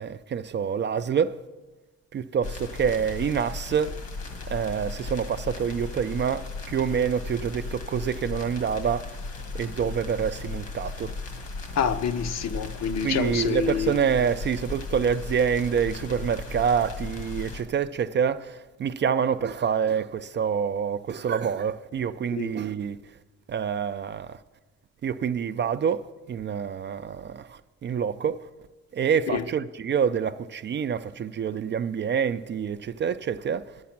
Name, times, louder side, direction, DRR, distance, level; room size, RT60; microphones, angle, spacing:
voice 1, 0.0-1.4 2.1-3.9 4.5-9.1 9.5-11.1 13.0-23.0 23.5-24.4 25.0-28.4 28.9-33.8, right 7 dB, 40° right, 0.4 m, -27 dB
sound 1, 2.4-17.6, left 3 dB, 75° left, 1.5 m, -36 dB
voice 2, 11.8-14.0 22.3-22.5 29.3-29.4, left 7 dB, 60° left, 0.7 m, -27 dB
9.4 x 8.3 x 5.9 m
cardioid pair, 90°, 30 cm